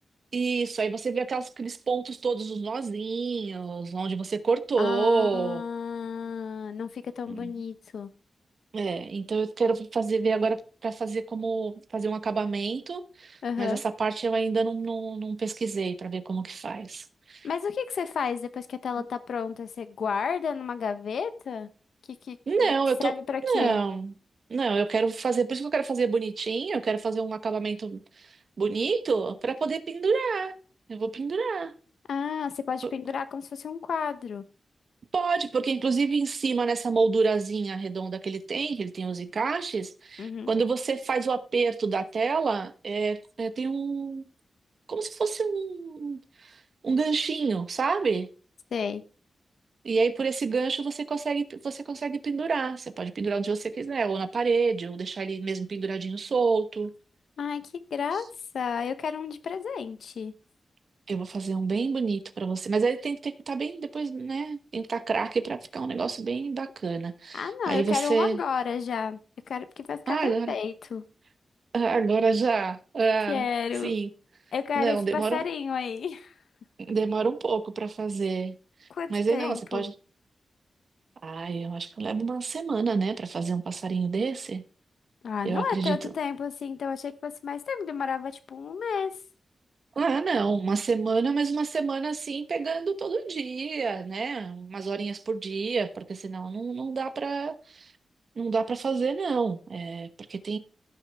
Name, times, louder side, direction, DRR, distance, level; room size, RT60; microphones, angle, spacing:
voice 1, 0.3-5.6 7.3-7.5 8.7-17.5 22.5-23.1 23.4-24.1 24.5-30.5 30.9-31.7 32.8-32.9 35.1-44.3 44.9-48.3 49.8-56.9 61.1-68.4 70.1-70.6 71.7-73.5 73.8-74.1 74.7-75.4 76.9-78.5 78.8-79.9 81.2-84.6 85.4-86.1 90.0-97.9 98.4-100.6, right 4 dB, 50° right, 1.0 m, -28 dB
voice 2, 4.8-8.1 13.4-13.8 17.4-21.7 22.2-22.4 23.0-23.8 32.1-34.4 40.2-40.5 48.7-49.0 57.4-57.6 57.9-58.3 58.5-60.3 67.3-69.2 69.5-71.0 73.3-73.9 74.5-76.3 78.9-79.8 85.2-89.1, left 6 dB, 85° left, 0.9 m, -31 dB
15.5 x 6.3 x 3.5 m
wide cardioid pair, 150°, 0 cm